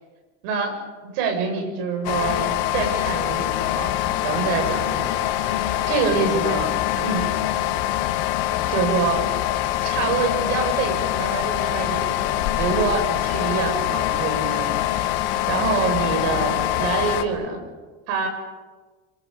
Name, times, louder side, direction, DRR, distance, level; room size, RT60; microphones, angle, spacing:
voice 1, 0.4-0.8 1.1-3.9 4.2-5.1 5.4-6.7 7.0-7.3 8.7-9.3 9.8-15.1 15.5-17.6 18.1-18.3, right 5 dB, 80° right, 3 dB, 7.5 m, -26 dB
sound 1, 2.0-17.2, left 13 dB, 75° left, 2.4 m, -24 dB
27.5 x 26.5 x 6.9 m, 1.3 s
cardioid pair, 180°, 33 cm